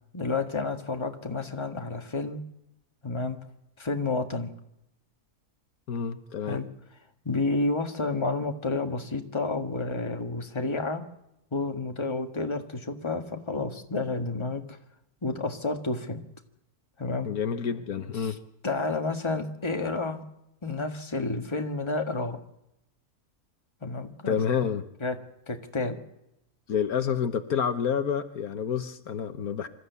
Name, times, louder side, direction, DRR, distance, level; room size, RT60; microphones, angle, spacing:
voice 1, 0.1-2.4 3.0-3.4 3.8-4.5 6.4-6.7 7.2-11.0 11.5-14.8 15.2-16.2 17.0-17.3 18.2-18.3 18.6-20.2 20.6-22.4 23.8-24.4 25.0-25.2 25.5-26.0, left 3 dB, 20° left, 4 dB, 1.6 m, -30 dB
voice 2, 5.9-6.6 17.3-18.4 24.3-24.8 26.7-29.7, left 7 dB, 75° left, 9 dB, 1.5 m, -28 dB
26.0 x 14.0 x 8.2 m, 0.85 s
omnidirectional pair, 1.6 m